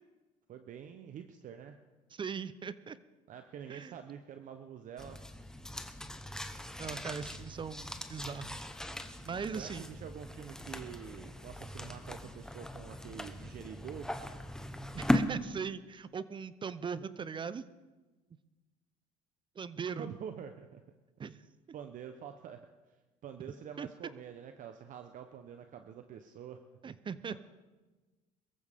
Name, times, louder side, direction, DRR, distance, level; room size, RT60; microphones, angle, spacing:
voice 1, 0.5-1.8 3.3-5.2 9.5-14.1 20.0-20.8 21.7-26.6 27.3-27.4, right 8 dB, 55° right, 7 dB, 0.9 m, -47 dB
voice 2, 2.1-3.0 3.7-3.9 6.8-8.7 9.2-9.9 14.9-17.6 19.6-20.1 21.2-21.4 23.8-23.9 26.8-27.4, right 6 dB, 30° right, 16 dB, 0.7 m, -39 dB
sound 1, 5.0-15.2, left 1 dB, 5° left, 1.2 m, -38 dB
22.5 x 14.5 x 3.7 m, 1.2 s
supercardioid pair, 85°, 16 cm